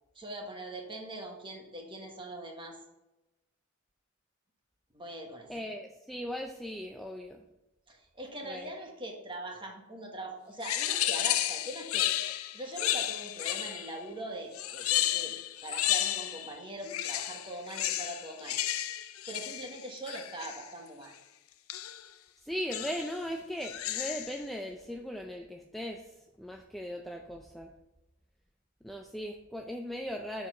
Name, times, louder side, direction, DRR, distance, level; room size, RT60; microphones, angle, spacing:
voice 1, 0.1-2.8 4.9-5.5 7.9-12.1 12.3-15.3 15.6-18.6 19.3-21.1, right 1 dB, 25° right, 1 dB, 1.3 m, -42 dB
voice 2, 5.5-7.4 8.5-8.7 22.4-26.1 26.4-27.7 28.8-30.5, equal, ahead, 2 dB, 0.4 m, -38 dB
sound 1, 10.6-14.0 14.5-16.5 16.8-20.7 21.7-22.1 22.7-23.2 23.6-24.4, left 13 dB, 75° left, 0.4 m, -32 dB
6.9 x 4.7 x 5.3 m, 0.96 s
head